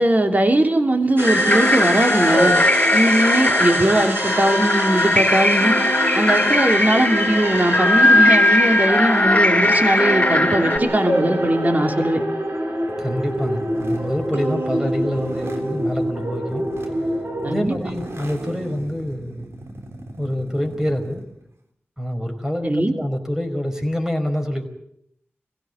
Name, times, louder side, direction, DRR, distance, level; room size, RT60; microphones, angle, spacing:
voice 1, 0.0-2.5 2.9-5.7 6.1-12.2 17.4-17.7 22.6-23.0, right 1 dB, 40° right, 4 dB, 3.1 m, -20 dB
sound 1, 1.2-10.8, left 1 dB, 30° left, 2.1 m, -18 dB
sound 2, 1.2-17.6, right 1 dB, 55° right, 5.0 m, -26 dB
sound 3, 12.8-21.4, right 1 dB, 75° right, 3.6 m, -38 dB
voice 2, 13.0-17.0 17.5-19.5 20.2-21.2 22.0-24.7, equal, 10° right, 4 dB, 5.0 m, -26 dB
23.0 x 16.5 x 8.0 m, 0.73 s
wide cardioid pair, 50°, 5 cm